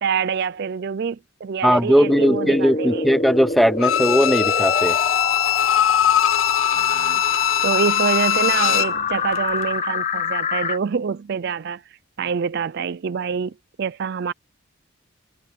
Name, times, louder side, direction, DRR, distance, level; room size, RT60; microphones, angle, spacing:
voice 1, 0.0-3.1 6.7-7.2 7.6-11.8 12.2-14.3, right 6 dB, 50° right, 0.4 m, -26 dB
voice 2, 1.6-5.0, equal, ahead, 0.8 m, -18 dB
sound 1, 2.0-10.8, left 4 dB, 35° left, 1.3 m, -26 dB
Bowed string instrument, 3.8-9.0 9.3-9.4, left 10 dB, 70° left, 0.7 m, -21 dB
head